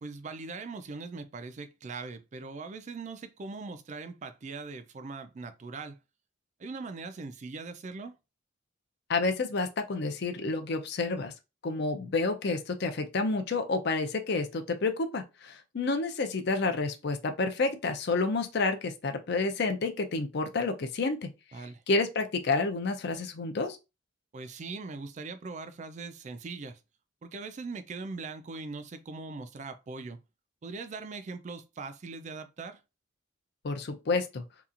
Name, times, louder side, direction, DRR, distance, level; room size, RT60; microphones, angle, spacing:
voice 1, 0.0-6.0 6.6-8.2 21.5-21.8 24.3-26.8 27.2-30.2 30.6-32.8, right 4 dB, 35° right, 0.3 m, -40 dB
voice 2, 9.1-11.3 11.6-21.3 21.6-23.8 33.6-34.4, left 3 dB, 55° left, 0.5 m, -29 dB
2.8 x 2.3 x 2.5 m
head